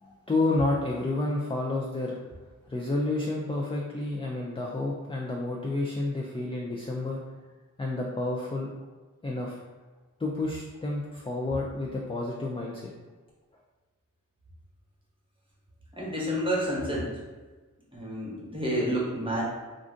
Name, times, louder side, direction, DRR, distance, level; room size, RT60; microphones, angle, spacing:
voice 1, 0.0-2.2 2.7-7.2 7.8-8.7 9.2-9.6 10.2-12.9, left 2 dB, 20° left, -2 dB, 0.3 m, -30 dB
voice 2, 15.9-17.1 17.9-19.4, equal, 15° right, -5 dB, 1.0 m, -29 dB
2.5 x 2.4 x 3.7 m, 1.3 s
wide cardioid pair, 50°, 32 cm